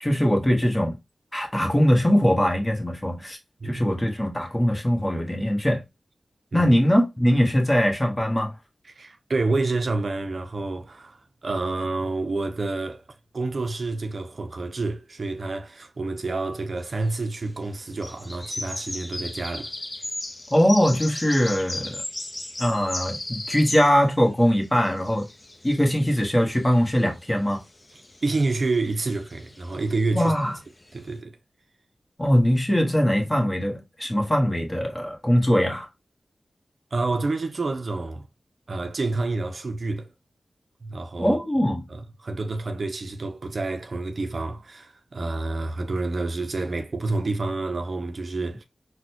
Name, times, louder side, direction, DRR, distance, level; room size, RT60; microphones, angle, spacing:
voice 1, 0.0-1.0 1.3-3.4 3.6-5.8 6.5-8.5 20.5-22.0 22.6-25.3 25.6-27.6 30.1-30.5 32.2-35.9 41.2-41.8, equal, 20° left, 1.1 m, -21 dB
voice 2, 8.9-13.0 13.3-19.7 28.2-30.3 30.9-31.4 36.9-38.3 38.7-40.1 40.8-41.4 41.9-48.6, right 3 dB, 65° right, 0.4 m, -28 dB
sound 1, 16.8-17.2 17.9-24.1 24.4-31.2, left 2 dB, 35° left, 0.6 m, -36 dB
3.9 x 2.1 x 2.8 m
cardioid pair, 50°, 0 cm